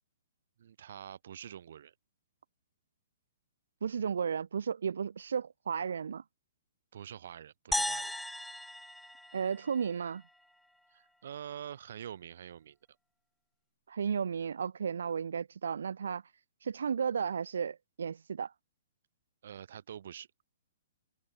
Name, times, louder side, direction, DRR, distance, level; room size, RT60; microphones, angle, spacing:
voice 1, 0.6-1.9 6.9-8.1 10.9-12.8 19.4-20.3, right 9 dB, 65° right, 4.4 m, -46 dB
voice 2, 3.8-6.2 9.3-10.2 13.9-16.2 16.6-18.5, right 7 dB, 85° right, 0.5 m, -34 dB
sound 1, 7.7-10.2, left 1 dB, ahead, 0.7 m, -36 dB
hypercardioid pair, 155°, 0 cm